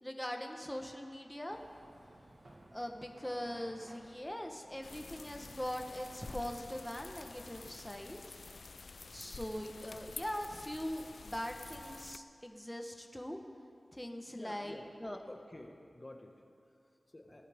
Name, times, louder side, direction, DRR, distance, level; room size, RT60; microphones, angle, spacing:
voice 1, 0.0-1.6 2.7-8.4 9.1-13.4 13.9-15.2, equal, 10° left, 3 dB, 1.1 m, -41 dB
sound 1, 1.5-7.4, right 1 dB, 70° right, 1.7 m, -59 dB
sound 2, 4.8-12.2, left 4 dB, 75° left, 0.3 m, -50 dB
voice 2, 14.3-14.9 15.3-17.5, left 1 dB, 35° left, 2 dB, 1.6 m, -51 dB
18.5 x 14.0 x 3.6 m, 2.5 s
wide cardioid pair, 50°, 0 cm